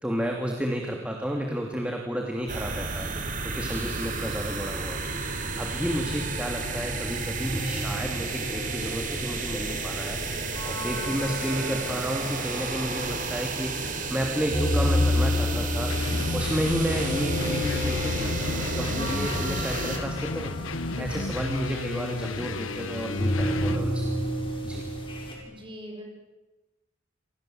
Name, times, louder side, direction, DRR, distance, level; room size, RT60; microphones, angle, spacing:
voice 1, 0.0-20.5 21.0-24.1 24.6-24.8, equal, 5° right, 1 dB, 2.9 m, -32 dB
sound 1, 2.5-20.0, right 3 dB, 40° right, 4.0 m, -32 dB
voice 2, 3.5-3.9 10.8-11.2 20.9-21.3 25.4-26.0, equal, 25° right, 2 dB, 6.5 m, -43 dB
sound 2, 7.4-25.3, left 1 dB, 25° left, 6.5 m, -31 dB
sound 3, 15.9-23.8, left 3 dB, 85° left, 1.3 m, -33 dB
28.5 x 26.0 x 8.0 m, 1.1 s
head